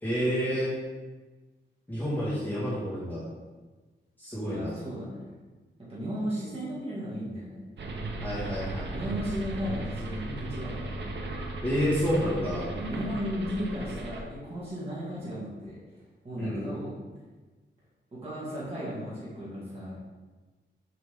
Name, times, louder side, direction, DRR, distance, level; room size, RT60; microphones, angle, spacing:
voice 1, 0.0-0.7 1.9-3.3 4.2-4.8 8.2-9.0 11.6-12.7 16.4-16.7, equal, 10° left, -10 dB, 1.8 m, -29 dB
voice 2, 4.4-5.3 5.9-7.9 8.9-11.0 12.7-15.8 16.2-17.0 18.1-20.0, equal, 30° right, -8 dB, 2.1 m, -35 dB
sound 1, 7.8-14.2, right 2 dB, 65° right, 0.8 m, -36 dB
7.3 x 5.0 x 3.7 m, 1.3 s
wide cardioid pair, 175°, 20 cm